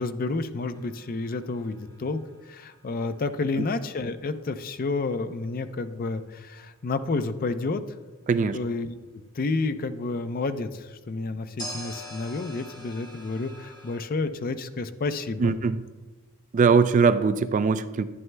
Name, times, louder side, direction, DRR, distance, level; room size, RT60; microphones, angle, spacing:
voice 1, 0.0-2.2 2.5-7.8 8.5-15.6, left 3 dB, 45° left, 10 dB, 0.5 m, -30 dB
sound 1, 0.7-3.8 11.6-14.0, equal, 20° left, 2.1 m, -43 dB
voice 2, 15.4-15.8 16.5-18.0, right 5 dB, 35° right, 12 dB, 0.3 m, -21 dB
11.0 x 10.5 x 2.2 m, 1.2 s
head